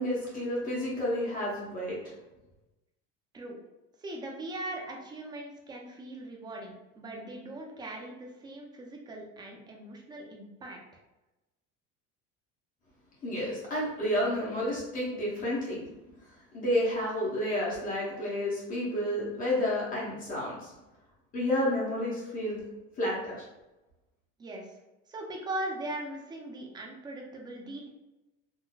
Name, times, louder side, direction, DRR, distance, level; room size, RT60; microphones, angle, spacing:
voice 1, 0.0-2.1 13.2-15.8 16.3-20.7 21.3-22.6 23.0-23.4, left 1 dB, 25° left, -6 dB, 0.9 m, -30 dB
voice 2, 4.0-10.8 24.4-24.7 25.1-27.9, right 1 dB, 15° right, 0 dB, 0.4 m, -40 dB
3.8 x 2.6 x 2.3 m, 1.0 s
cardioid pair, 165°, 31 cm